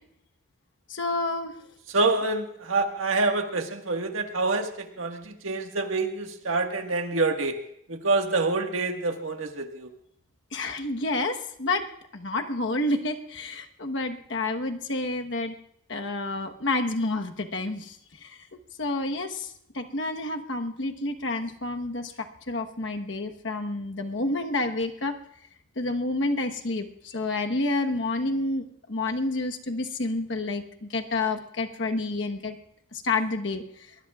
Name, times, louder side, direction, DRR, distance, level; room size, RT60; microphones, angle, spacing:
voice 1, 0.9-1.5 10.5-11.9 12.1-15.5 15.9-18.0 18.2-19.5 19.7-22.1 22.5-25.2 25.8-32.6 32.9-33.6, left 2 dB, 65° left, 4 dB, 1.2 m, -29 dB
voice 2, 1.9-7.6 7.9-9.9, right 3 dB, 85° right, 4 dB, 1.6 m, -27 dB
23.0 x 20.0 x 2.4 m, 0.74 s
head